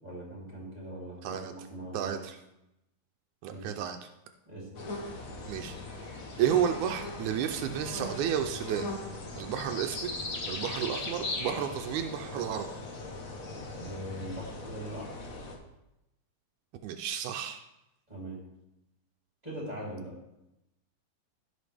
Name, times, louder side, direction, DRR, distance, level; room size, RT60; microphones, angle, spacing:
voice 1, 0.0-2.2 3.5-3.8 4.5-4.8 13.7-15.1 18.1-18.4 19.4-20.1, right 1 dB, 15° right, -5 dB, 3.0 m, -41 dB
voice 2, 1.2-1.5 1.9-2.4 3.4-4.1 5.5-5.8 6.0-8.9 9.4-10.1 10.5-12.7 16.8-17.6, right 9 dB, 85° right, 5 dB, 2.0 m, -32 dB
sound 1, 4.7-15.6, left 2 dB, 60° left, 0.9 m, -39 dB
15.0 x 5.6 x 3.4 m, 0.90 s
omnidirectional pair, 3.4 m